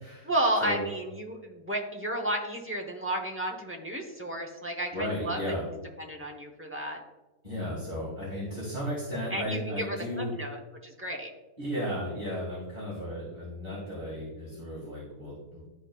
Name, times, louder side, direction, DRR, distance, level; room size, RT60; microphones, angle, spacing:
voice 1, 0.2-5.4 6.0-7.0 9.3-11.3, right 1 dB, 15° right, 1 dB, 0.6 m, -32 dB
voice 2, 4.9-5.6 7.4-10.3 11.6-15.6, equal, 30° right, -9 dB, 2.3 m, -34 dB
11.5 x 4.1 x 2.4 m, 1.1 s
omnidirectional pair, 1.5 m